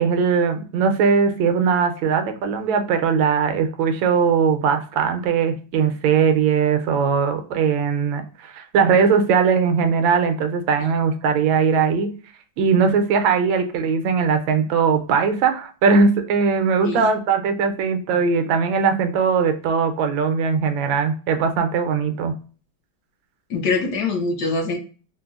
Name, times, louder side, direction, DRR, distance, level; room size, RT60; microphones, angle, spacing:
voice 1, 0.0-12.1 12.6-22.3, right 5 dB, 85° right, 7 dB, 1.3 m, -20 dB
voice 2, 23.5-24.8, left 3 dB, 70° left, 1 dB, 1.1 m, -23 dB
3.8 x 2.0 x 2.3 m, 0.38 s
omnidirectional pair, 2.1 m